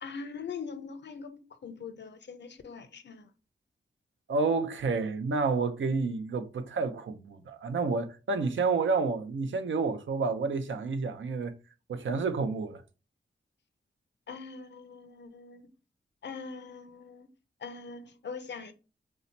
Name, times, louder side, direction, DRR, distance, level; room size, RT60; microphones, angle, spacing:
voice 1, 0.0-3.2 14.3-15.6 16.2-17.3 17.6-18.7, left 5 dB, 65° left, 0.5 m, -42 dB
voice 2, 4.3-11.5 11.9-12.8, right 4 dB, 80° right, 0.5 m, -29 dB
2.7 x 2.1 x 3.9 m
cardioid pair, 50°, 20 cm